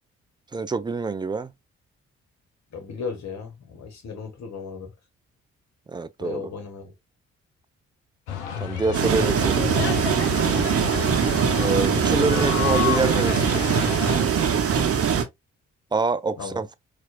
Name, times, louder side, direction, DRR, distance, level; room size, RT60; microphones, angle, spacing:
voice 1, 0.5-1.5 5.9-6.4 8.6-9.7 11.6-13.7 15.9-16.7, right 4 dB, 15° right, 0.3 m, -26 dB
voice 2, 2.7-4.9 6.2-6.9 10.5-10.8 16.4-16.6, left 5 dB, 50° left, 1.4 m, -36 dB
sound 1, 8.3-14.2, left 9 dB, 85° left, 0.5 m, -30 dB
sound 2, 8.9-15.2, right 7 dB, 40° right, 0.8 m, -22 dB
4.2 x 2.5 x 2.3 m
figure-of-eight pair, 40°, 34 cm